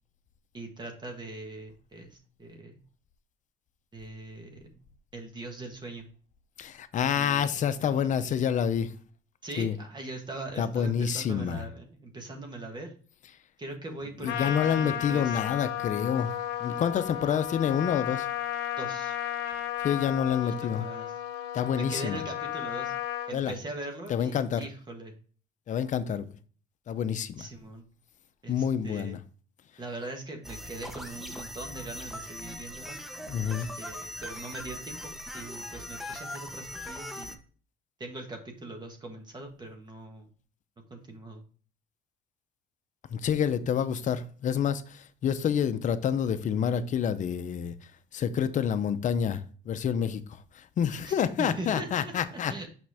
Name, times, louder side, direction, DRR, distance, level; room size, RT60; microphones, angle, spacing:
voice 1, 0.5-2.8 3.9-4.7 5.1-6.1 7.1-8.1 9.4-12.9 13.6-15.4 18.8-19.2 20.4-21.1 21.8-22.9 23.3-25.1 27.4-27.9 28.4-29.2 29.8-33.0 33.4-37.4 38.0-40.3 40.9-41.4 51.0-52.7, right 2 dB, 25° right, 1.5 m, -41 dB
voice 2, 6.6-8.9 9.6-9.8 10.6-11.6 14.2-16.3 16.6-18.3 19.8-20.9 21.5-22.2 23.3-23.5 24.1-24.6 25.7-26.3 26.9-27.5 28.5-29.2 33.3-33.7 43.1-47.7 48.1-52.7, left 8 dB, 45° left, 0.7 m, -28 dB
Trumpet, 14.2-23.3, left 12 dB, 90° left, 0.7 m, -34 dB
sound 1, 30.4-37.4, equal, ahead, 0.9 m, -40 dB
6.1 x 5.2 x 3.4 m
cardioid pair, 110°, 17 cm